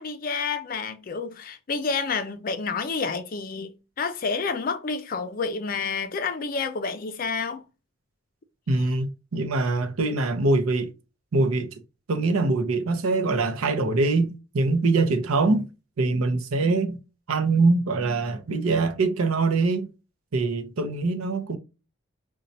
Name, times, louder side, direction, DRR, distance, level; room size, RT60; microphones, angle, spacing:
voice 1, 0.0-7.6, left 4 dB, 40° left, 0.4 m, -29 dB
voice 2, 8.7-10.9 11.3-11.7 12.1-15.7 16.0-17.0 17.3-19.9 20.3-21.6, right 3 dB, 80° right, 0.6 m, -23 dB
4.1 x 2.2 x 2.6 m
head